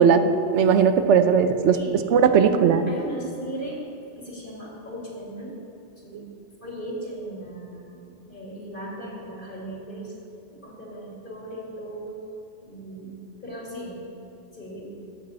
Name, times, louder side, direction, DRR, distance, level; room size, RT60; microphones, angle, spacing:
voice 1, 0.0-0.4 1.7-2.0 2.5-3.8 4.2-5.6 6.0-6.3 6.6-10.1 10.5-12.2 12.6-14.1 14.5-15.0, right 1 dB, 50° left, -4 dB, 2.5 m, -37 dB
voice 2, 0.5-1.8 2.1-2.8, right 7 dB, 85° right, 9 dB, 1.0 m, -17 dB
14.0 x 8.5 x 4.2 m, 2.7 s
omnidirectional pair, 1.2 m